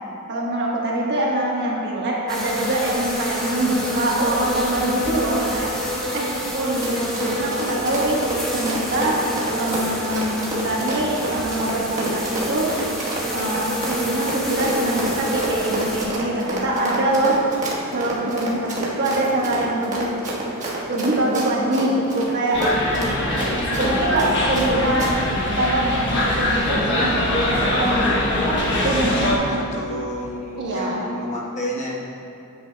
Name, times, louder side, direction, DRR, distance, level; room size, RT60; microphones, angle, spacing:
voice 1, 0.3-6.3 6.5-9.3 9.5-12.7 13.3-17.4 17.9-20.2 20.9-22.6 23.3-23.4 23.7-25.1 25.6-27.8 28.7-29.4 30.6-31.0, right 1 dB, 55° right, -4 dB, 1.3 m, -24 dB
sound 1, 2.3-16.1, equal, ahead, 1.3 m, -28 dB
Run, 6.5-24.7 25.0-25.1, right 2 dB, 35° right, 1.3 m, -29 dB
sound 2, 22.5-29.4, left 1 dB, 55° left, 1.1 m, -22 dB
voice 2, 29.1-31.9, equal, 35° left, -3 dB, 1.0 m, -30 dB
9.8 x 8.1 x 2.3 m, 2.7 s
head